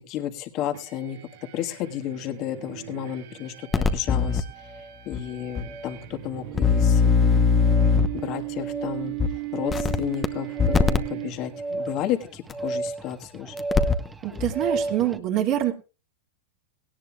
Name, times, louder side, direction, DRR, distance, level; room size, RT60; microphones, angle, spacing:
voice 1, 0.1-1.2 1.5-4.4 5.0-7.6 8.1-9.1 9.5-13.5, left 11 dB, 45° left, 5 dB, 1.6 m, -32 dB
sound 1, 0.7-11.8, right 19 dB, 65° right, 2.0 m, -37 dB
sound 2, 3.7-4.4 5.1-5.2 5.6-5.7 6.5-8.2 9.2-9.3 9.7-10.3 10.6-11.0 12.5-12.6 13.6-14.1 14.4-14.5, left 6 dB, 20° left, 1.0 m, -20 dB
sound 3, 3.7-3.9 4.6-5.0 5.6-6.0 6.6-7.0 7.6-8.0 8.5-15.2, right 3 dB, 15° right, 1.3 m, -34 dB
voice 2, 14.2-15.7, right 12 dB, 50° right, 0 dB, 2.3 m, -25 dB
18.0 x 17.0 x 2.4 m, 0.33 s
hypercardioid pair, 110°, 0 cm